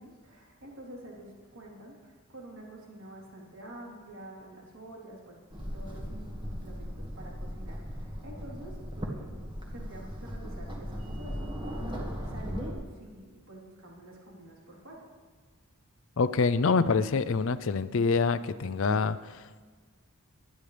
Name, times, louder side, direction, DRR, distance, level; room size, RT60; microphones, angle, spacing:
voice 1, 0.0-9.4 9.7-15.0, right 1 dB, 65° right, -3 dB, 3.6 m, -48 dB
sound 1, 5.5-12.7, equal, 20° right, 1.8 m, -38 dB
voice 2, 16.2-19.6, left 4 dB, 60° left, 15 dB, 0.5 m, -26 dB
23.5 x 10.0 x 3.4 m, 1.5 s
head